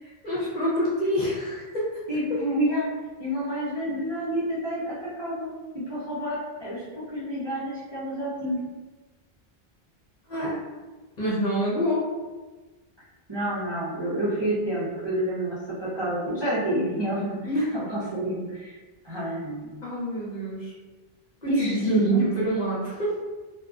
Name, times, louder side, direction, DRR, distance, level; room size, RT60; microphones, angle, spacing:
voice 1, 0.0-2.0 2.3-2.4 10.3-10.6 11.2-12.1 17.5-17.7 19.8-20.7 21.4-23.2, right 1 dB, 50° left, -7 dB, 0.8 m, -27 dB
voice 2, 2.1-2.9 3.2-5.5 5.9-6.8 7.1-8.6 13.3-18.7 19.0-19.7 21.5-22.2, right 1 dB, 30° right, -11 dB, 0.6 m, -28 dB
2.5 x 2.1 x 2.3 m, 1.3 s
omnidirectional pair, 1.0 m